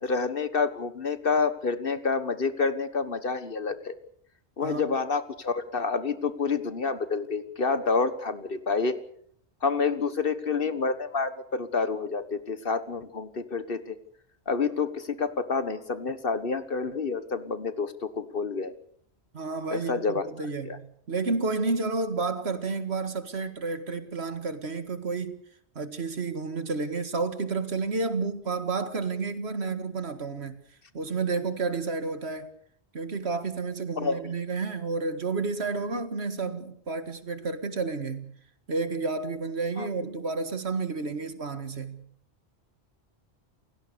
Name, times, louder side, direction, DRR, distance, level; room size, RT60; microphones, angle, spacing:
voice 1, 0.0-3.9 4.6-9.0 9.6-13.9 14.5-18.7 19.7-20.2 20.6-20.8 34.0-34.3 39.8-39.9, left 4 dB, 55° left, 1.6 m, -28 dB
voice 2, 4.6-5.0 19.3-25.4 25.8-30.6 30.9-32.5 32.9-38.3 38.7-42.0, right 4 dB, 75° right, 2.0 m, -31 dB
29.0 x 16.5 x 6.9 m
omnidirectional pair, 1.1 m